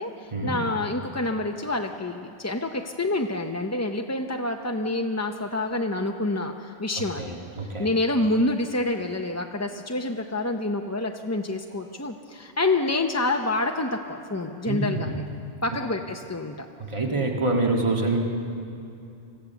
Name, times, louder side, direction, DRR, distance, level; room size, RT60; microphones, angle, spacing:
voice 1, 0.0-7.4 7.8-15.2 15.6-16.7, left 2 dB, 20° left, 3 dB, 0.5 m, -27 dB
voice 2, 7.2-7.9 14.7-15.2 16.8-18.2, right 2 dB, 25° right, 0 dB, 1.9 m, -26 dB
25.5 x 15.5 x 7.0 m, 2.7 s
omnidirectional pair, 1.2 m